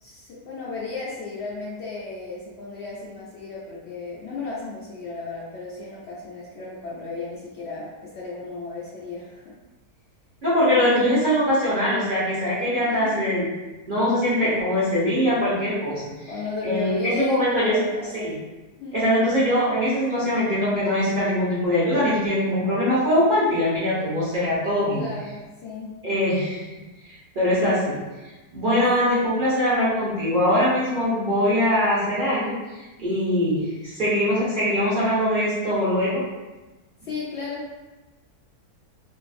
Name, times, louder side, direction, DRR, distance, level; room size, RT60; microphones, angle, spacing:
voice 1, 0.0-9.5 10.6-11.2 12.8-13.3 16.3-18.4 18.8-19.1 25.0-26.0 29.0-29.3 37.0-37.7, left 3 dB, 90° left, -6 dB, 0.5 m, -34 dB
voice 2, 10.4-13.5 13.9-16.3 16.6-17.8 18.1-18.3 18.9-25.1 26.0-26.6 27.0-28.0 28.5-36.2, left 1 dB, 45° right, -9 dB, 0.6 m, -22 dB
2.6 x 2.5 x 2.4 m, 1.1 s
omnidirectional pair, 1.7 m